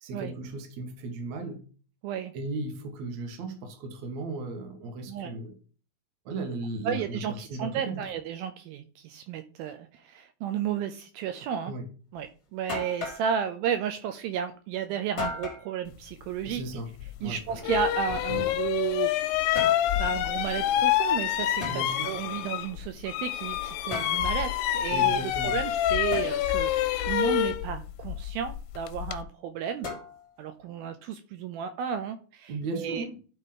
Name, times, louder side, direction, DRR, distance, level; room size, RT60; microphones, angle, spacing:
voice 1, 0.0-1.6 2.3-5.6 6.3-8.1 11.7-11.9 16.4-16.9 17.2-17.4 21.7-22.1 24.9-25.6 32.5-33.2, right 2 dB, 60° right, 2.0 m, -36 dB
voice 2, 6.9-11.7 12.1-16.6 17.2-19.3 20.0-29.9 30.4-33.1, right 8 dB, 80° right, 2.2 m, -33 dB
sound 1, 12.2-12.3 12.7-13.3 15.2-15.7 17.3-18.8 19.3-19.9 21.6-21.8 23.9-24.2 26.1-26.3 29.8-30.4, left 3 dB, 45° left, 0.8 m, -35 dB
sound 2, 17.0-17.1 17.6-22.8 23.1-29.2, left 12 dB, 85° left, 2.6 m, -27 dB
11.5 x 4.2 x 3.7 m
omnidirectional pair, 4.6 m